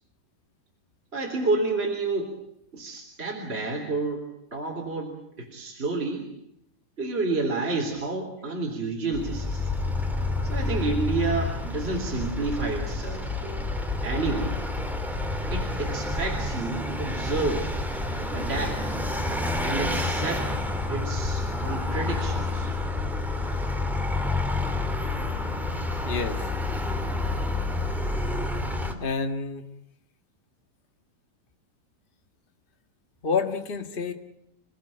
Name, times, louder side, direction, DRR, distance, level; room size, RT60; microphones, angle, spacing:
voice 1, 1.1-2.3 2.7-4.2 4.5-6.3 7.0-9.7 10.4-13.7 14.0-14.6 15.5-17.8 18.2-19.0 19.6-20.5 20.9-22.7, right 3 dB, 15° right, 1 dB, 3.4 m, -30 dB
Vehicle, 9.1-28.9, left 2 dB, ahead, 2.4 m, -29 dB
voice 2, 26.0-26.4 29.0-29.6 33.2-34.1, left 4 dB, 55° left, 6 dB, 0.5 m, -28 dB
29.0 x 18.0 x 8.8 m, 0.77 s
omnidirectional pair, 4.0 m